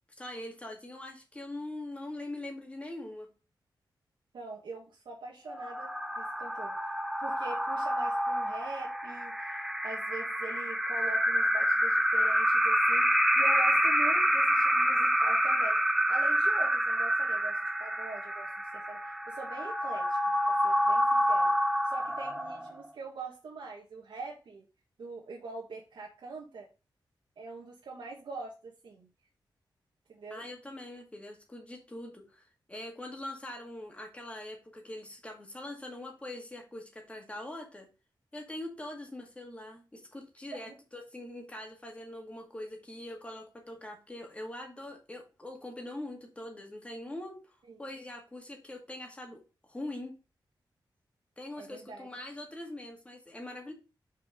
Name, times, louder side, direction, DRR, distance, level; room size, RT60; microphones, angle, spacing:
voice 1, 0.2-3.3 30.3-37.9 38.3-49.4 49.7-50.1 51.4-53.7, left 1 dB, 15° left, 2 dB, 1.9 m, -43 dB
voice 2, 4.3-6.7 7.2-21.5 21.8-24.6 25.0-26.7 27.4-29.1 30.1-30.5 40.7-40.8 47.7-47.8 51.6-52.1, right 3 dB, 80° right, -2 dB, 1.6 m, -44 dB
sound 1, 5.5-22.9, equal, 5° right, 0.6 m, -28 dB
5.7 x 4.7 x 5.2 m, 0.32 s
wide cardioid pair, 145°, 8 cm